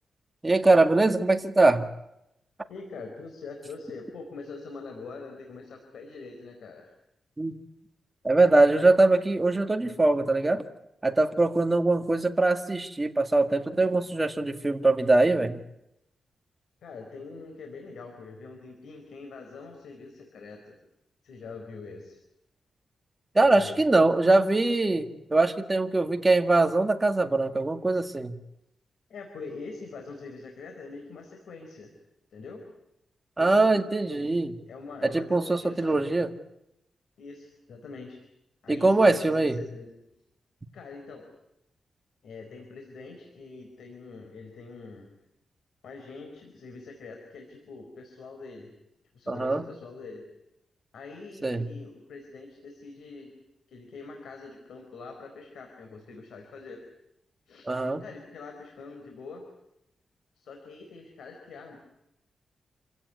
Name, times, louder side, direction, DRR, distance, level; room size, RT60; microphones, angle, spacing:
voice 1, 0.4-1.9 7.4-7.5 8.2-10.6 11.0-15.6 23.3-28.4 33.4-34.6 35.0-36.3 38.7-39.6 49.3-49.6 51.4-51.7 57.7-58.0, right 2 dB, 20° right, 6 dB, 1.9 m, -22 dB
voice 2, 2.7-6.9 16.8-20.7 21.2-22.2 23.4-23.8 29.1-31.9 32.3-32.6 33.4-33.8 34.1-34.4 34.7-36.0 37.2-38.2 38.6-39.9 40.7-41.3 42.2-45.1 45.8-48.7 49.1-50.2 50.9-53.4 53.7-56.8 57.5-57.6 58.0-59.5 60.4-61.8, left 4 dB, 90° left, 3 dB, 4.2 m, -44 dB
27.5 x 16.5 x 9.7 m, 0.86 s
wide cardioid pair, 115°, 0 cm